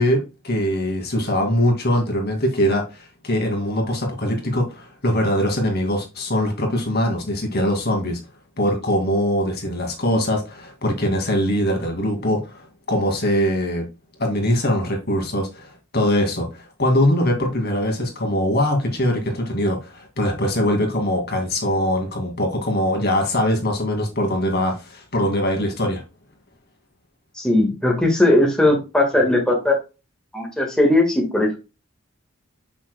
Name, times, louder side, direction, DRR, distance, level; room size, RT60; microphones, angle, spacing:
voice 1, 0.0-8.2 8.6-13.9 14.2-26.0, equal, 50° left, 2.3 m, -22 dB
voice 2, 27.4-29.8 30.3-31.6, left 1 dB, 5° left, 1.7 m, -18 dB
7.3 x 6.0 x 2.3 m
head